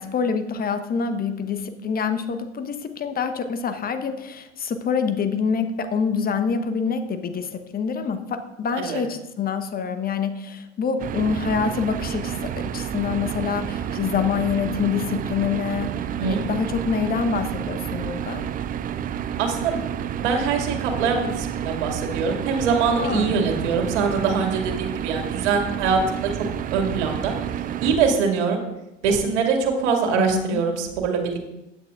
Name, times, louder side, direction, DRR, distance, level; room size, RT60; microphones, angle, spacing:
voice 1, 0.0-16.0 16.2-18.4 23.0-23.3 30.2-30.6, left 6 dB, 25° left, 9 dB, 1.1 m, -26 dB
sound 1, 11.0-28.0, right 9 dB, 25° right, 0.5 m, -30 dB
voice 2, 19.4-19.8 20.2-26.5 26.7-27.3 27.8-28.6 29.0-31.5, right 5 dB, 60° right, 2 dB, 2.3 m, -23 dB
15.0 x 9.8 x 2.5 m, 0.90 s
figure-of-eight pair, 75°, 37 cm